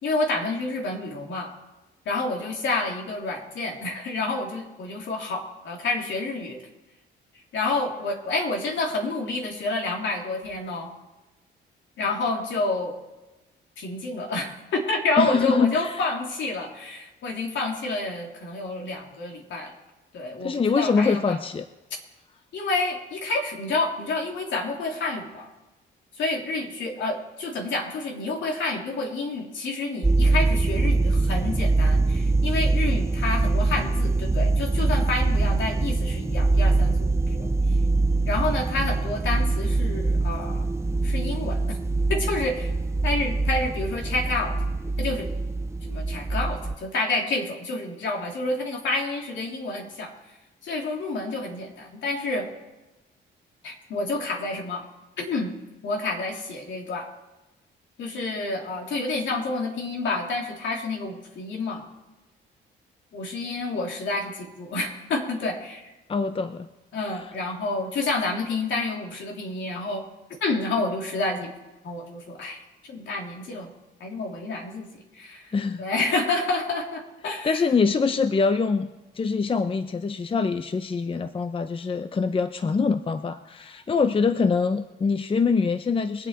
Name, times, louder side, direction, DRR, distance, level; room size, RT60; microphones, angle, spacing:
voice 1, 0.0-1.5 2.1-6.6 7.5-10.9 12.0-13.0 13.8-19.7 20.1-21.4 22.5-25.5 26.1-37.5 38.3-40.7 41.0-41.8 42.1-42.7 43.0-44.6 45.0-45.3 45.9-50.1 50.6-52.5 53.6-54.9 55.2-55.5 55.8-57.1 58.0-61.9 63.1-65.9 66.9-70.0 70.4-71.5 71.8-73.7 74.0-77.6, left 2 dB, 70° left, 0 dB, 3.4 m, -29 dB
voice 2, 15.2-16.0 20.4-21.7 66.1-66.7 67.0-67.2 75.5-75.8 77.4-78.9 79.1-86.3, left 5 dB, 25° left, 10 dB, 0.7 m, -24 dB
sound 1, 30.0-46.8, right 3 dB, 15° right, 0.5 m, -23 dB
23.5 x 8.3 x 4.5 m, 1.1 s
cardioid pair, 90°, 20 cm